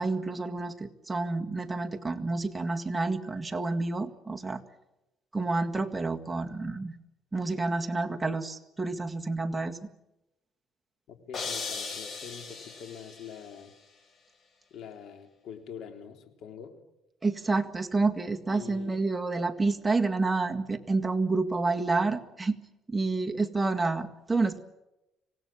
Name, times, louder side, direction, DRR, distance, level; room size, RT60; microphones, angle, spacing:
voice 1, 0.0-4.6 5.3-6.9 7.3-9.8 17.2-22.6 22.9-24.6, right 3 dB, 15° right, 4 dB, 1.8 m, -29 dB
voice 2, 11.1-13.7 14.7-16.8 18.5-19.0, left 7 dB, 70° left, 6 dB, 3.6 m, -44 dB
sound 1, 11.3-13.4, left 4 dB, 45° left, 5.6 m, -37 dB
25.5 x 18.5 x 8.8 m, 0.93 s
cardioid pair, 115°, 0 cm